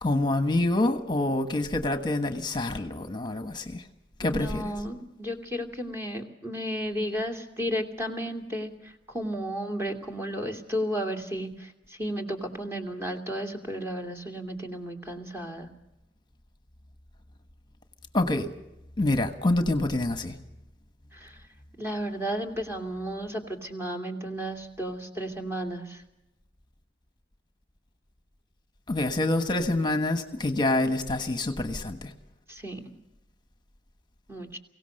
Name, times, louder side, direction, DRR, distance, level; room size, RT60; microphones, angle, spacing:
voice 1, 0.0-3.9 4.2-4.6 18.1-18.5 19.0-20.4 28.9-32.1, left 2 dB, 25° left, 7 dB, 1.3 m, -26 dB
voice 2, 4.2-15.7 21.1-21.4 21.8-26.0 32.5-32.8 34.3-34.6, equal, 15° right, 3 dB, 2.7 m, -33 dB
24.0 x 17.0 x 6.6 m, 0.86 s
head